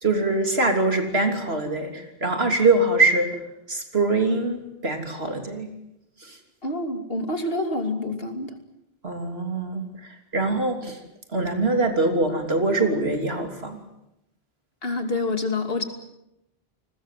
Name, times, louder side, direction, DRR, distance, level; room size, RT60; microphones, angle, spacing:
voice 1, 0.0-3.4 3.7-5.7 6.2-6.4 9.0-11.0 11.3-13.8, right 2 dB, 75° right, 4 dB, 3.6 m, -23 dB
voice 2, 6.6-8.6 14.8-15.8, left 2 dB, 65° left, 6 dB, 3.0 m, -27 dB
30.0 x 20.0 x 7.6 m, 0.87 s
omnidirectional pair, 1.1 m